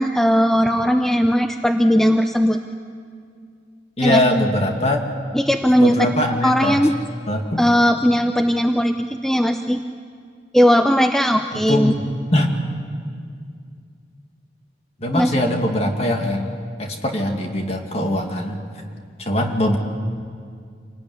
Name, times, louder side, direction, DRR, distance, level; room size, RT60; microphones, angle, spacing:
voice 1, 0.0-2.6 4.0-4.2 5.3-5.9 6.4-6.9 7.6-9.8 10.5-11.9 15.1-15.3, equal, ahead, 6 dB, 0.6 m, -17 dB
voice 2, 4.0-5.0 5.8-6.8 7.3-7.6 11.7-12.0 12.3-12.6 15.0-16.5 16.8-18.6 19.2-19.8, left 1 dB, 35° left, 3 dB, 2.4 m, -21 dB
27.0 x 18.5 x 9.7 m, 2.2 s
head